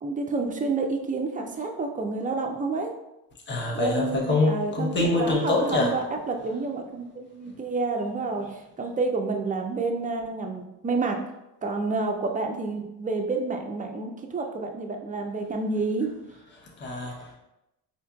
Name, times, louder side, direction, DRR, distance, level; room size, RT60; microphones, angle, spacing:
voice 1, 0.0-2.9 3.8-11.2 11.6-16.1, right 3 dB, 20° right, 3 dB, 0.5 m, -29 dB
voice 2, 3.5-6.0 7.4-7.6 16.5-17.4, left 2 dB, 25° left, -1 dB, 0.8 m, -25 dB
4.3 x 2.9 x 2.3 m, 0.91 s
supercardioid pair, 80°, 44 cm